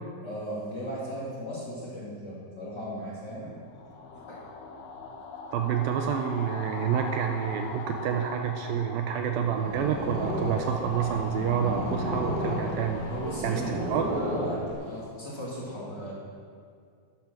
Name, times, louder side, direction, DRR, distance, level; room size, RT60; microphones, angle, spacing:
voice 1, 0.2-3.5 4.1-4.4 13.1-16.1, equal, 35° left, -7 dB, 2.3 m, -37 dB
sound 1, 3.6-14.7, left 4 dB, 85° left, 1.4 m, -41 dB
voice 2, 5.5-13.0 13.4-13.6 13.9-14.0, right 8 dB, 80° right, 4 dB, 2.3 m, -28 dB
Purr, 9.3-15.0, right 1 dB, 55° right, 4.6 m, -32 dB
12.0 x 9.3 x 6.0 m, 2.2 s
omnidirectional pair, 4.5 m